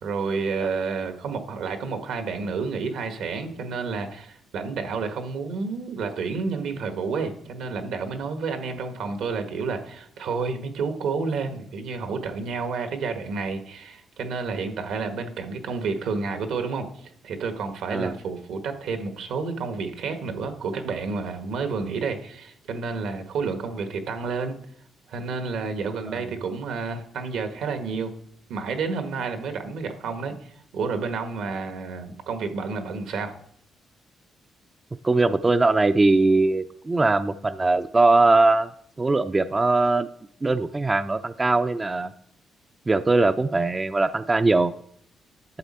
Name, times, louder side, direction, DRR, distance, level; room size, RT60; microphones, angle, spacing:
voice 1, 0.0-24.6 25.1-28.1 28.5-33.3, right 4 dB, 80° right, 7 dB, 1.3 m, -30 dB
voice 2, 35.0-38.7 39.0-40.1 40.4-42.1 42.9-44.7, right 3 dB, 25° right, 10 dB, 0.4 m, -21 dB
11.5 x 7.3 x 4.2 m, 0.68 s
cardioid pair, 90°, 0 cm